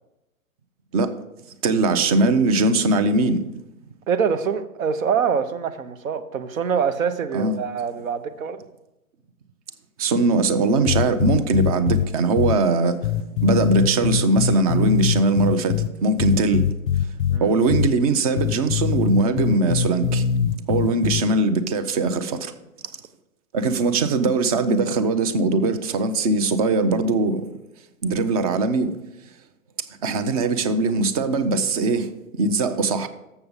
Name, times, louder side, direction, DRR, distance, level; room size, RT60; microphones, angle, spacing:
voice 1, 1.6-3.4 7.3-7.6 10.0-13.0 13.4-16.7 17.4-20.2 20.7-22.5 23.5-27.5 28.0-28.9 30.0-32.1 32.4-33.1, right 3 dB, 30° right, 0.4 m, -21 dB
voice 2, 4.1-8.6 17.3-17.5, right 6 dB, 65° right, 0.9 m, -24 dB
sound 1, 10.9-12.0 12.4-12.5 13.0-15.9 16.2-17.4 17.7-17.9 18.4-21.2, left 8 dB, 35° left, 0.5 m, -22 dB
7.1 x 6.8 x 5.3 m
hypercardioid pair, 125°, 43 cm